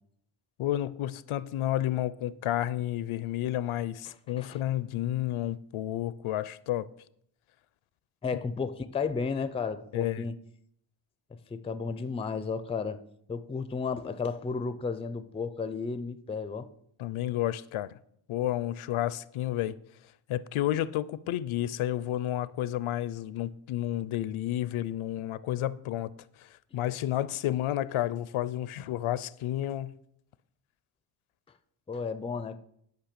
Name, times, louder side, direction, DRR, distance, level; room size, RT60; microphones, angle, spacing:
voice 1, 0.6-6.9 9.9-10.3 17.0-17.9 18.3-19.8 20.3-26.1 26.7-29.9, left 13 dB, 75° left, 0.6 m, -31 dB
voice 2, 4.1-4.6 8.2-10.4 11.5-13.0 13.3-16.7 31.9-32.6, left 5 dB, 15° left, 0.4 m, -33 dB
10.5 x 5.4 x 6.7 m
wide cardioid pair, 140°, 50 cm